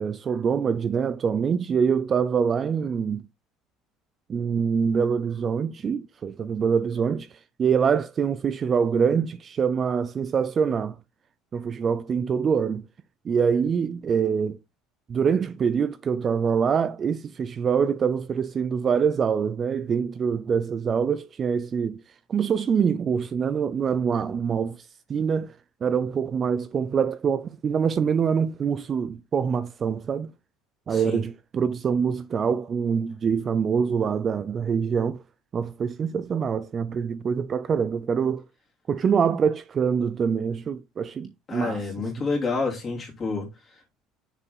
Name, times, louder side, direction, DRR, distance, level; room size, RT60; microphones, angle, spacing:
voice 1, 0.0-3.2 4.3-7.3 7.6-11.0 11.5-12.8 13.2-14.6 15.1-22.0 22.3-25.5 25.8-30.3 30.9-35.2 35.5-38.4 38.9-41.9, right 6 dB, 25° right, 0.4 m, -25 dB
voice 2, 30.9-31.2 41.5-43.5, left 3 dB, 25° left, 2.9 m, -28 dB
6.7 x 4.7 x 5.3 m
cardioid pair, 160°, 0 cm